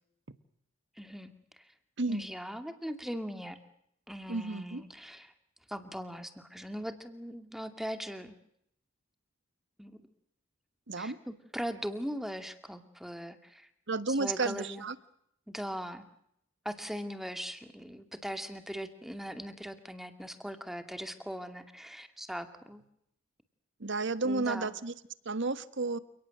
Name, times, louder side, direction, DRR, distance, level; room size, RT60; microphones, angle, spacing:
voice 1, 1.0-1.3 2.1-3.6 4.1-5.3 5.7-8.3 9.8-10.0 11.0-13.7 14.1-14.9 15.5-16.1 16.6-22.8 24.2-24.8, equal, ahead, 8 dB, 2.4 m, -40 dB
voice 2, 4.3-4.8 10.9-11.2 13.9-14.9 23.8-24.9 25.2-26.0, right 3 dB, 60° right, 13 dB, 1.5 m, -32 dB
29.5 x 18.5 x 7.8 m, 0.74 s
head